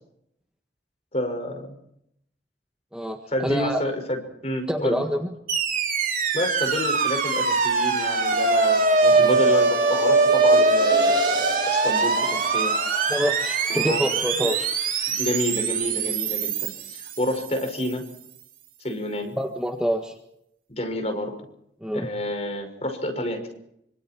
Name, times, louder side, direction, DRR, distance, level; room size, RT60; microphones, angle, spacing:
voice 1, 1.1-1.7 3.3-5.0 6.3-8.8 9.1-11.4 11.7-12.7 13.7-14.0 15.1-18.1 18.8-19.4 20.7-21.4 21.9-23.5, left 1 dB, 35° left, 4 dB, 6.0 m, -29 dB
voice 2, 2.9-3.8 4.7-5.3 9.0-9.3 13.1-14.7 19.4-20.1 21.8-22.1, equal, 5° right, 3 dB, 1.7 m, -26 dB
sound 1, 5.5-17.7, right 3 dB, 50° right, 3.3 m, -22 dB
sound 2, 8.5-13.7, right 2 dB, 25° right, 4.5 m, -37 dB
27.0 x 25.5 x 4.7 m, 0.75 s
head